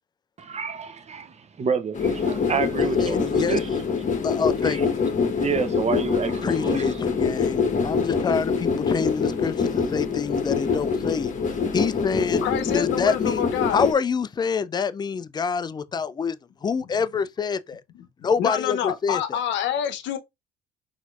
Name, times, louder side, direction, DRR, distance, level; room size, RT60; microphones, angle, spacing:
voice 1, 0.4-3.8 4.6-4.8 5.4-6.9, right 5 dB, 30° right, 0.7 m, -29 dB
sound 1, 1.9-13.9, left 5 dB, 35° left, 1.0 m, -25 dB
voice 2, 3.0-3.6 4.2-4.8 6.4-11.3 11.7-12.5 12.7-13.4 13.7-16.4 16.6-17.8 18.2-19.4, left 5 dB, 20° left, 0.3 m, -26 dB
voice 3, 12.4-13.9 18.4-20.2, left 9 dB, 65° left, 0.7 m, -27 dB
4.2 x 2.7 x 2.4 m
hypercardioid pair, 55°, 21 cm